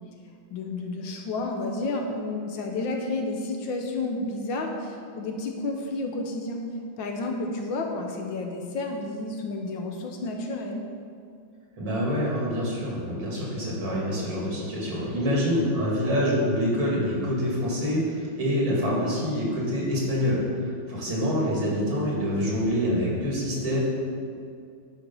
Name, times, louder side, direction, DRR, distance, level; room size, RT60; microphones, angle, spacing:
voice 1, 0.5-6.6 7.0-10.8 21.1-21.2, left 2 dB, 70° left, 2 dB, 1.5 m, -31 dB
voice 2, 11.8-23.8, equal, 75° right, -5 dB, 3.1 m, -26 dB
10.5 x 4.7 x 5.3 m, 2.4 s
omnidirectional pair, 2.3 m